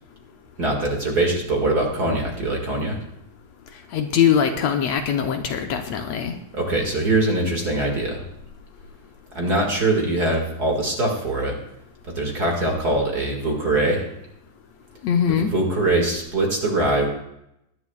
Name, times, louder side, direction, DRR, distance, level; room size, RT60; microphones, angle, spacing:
voice 1, 0.6-3.0 6.5-8.2 9.3-11.6 12.1-14.1 15.5-17.1, right 2 dB, 35° right, 0 dB, 2.1 m, -22 dB
voice 2, 3.9-6.3 15.0-15.5, left 8 dB, 75° left, 5 dB, 1.9 m, -21 dB
20.5 x 10.5 x 2.3 m, 0.81 s
omnidirectional pair, 3.3 m